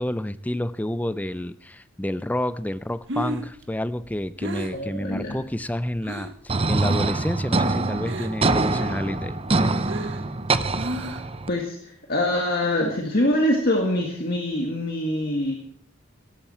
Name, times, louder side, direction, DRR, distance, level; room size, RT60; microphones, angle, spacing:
voice 1, 0.0-9.4, left 1 dB, 10° left, 15 dB, 0.5 m, -29 dB
Breathing, 2.8-6.4 6.8-7.3 7.5-8.5 8.9-11.4, right 1 dB, 65° right, 1.9 m, -34 dB
voice 2, 4.7-5.4 11.5-15.5, left 1 dB, 50° left, 1 dB, 1.9 m, -24 dB
sound 1, 6.5-11.5, right 3 dB, 30° right, 0.7 m, -24 dB
17.5 x 14.0 x 4.4 m, 0.64 s
head